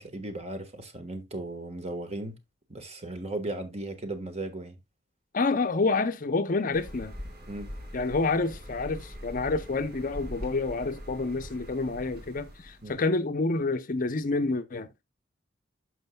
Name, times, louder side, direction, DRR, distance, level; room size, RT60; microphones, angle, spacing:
voice 1, 0.0-2.4 2.7-4.8 7.5-7.7 12.8-13.0, right 2 dB, 30° right, 1.4 m, -36 dB
voice 2, 5.3-7.1 7.9-15.0, left 3 dB, 45° left, 0.6 m, -28 dB
sound 1, 6.7-13.0, equal, 50° right, 2.4 m, -42 dB
11.0 x 6.3 x 2.2 m
head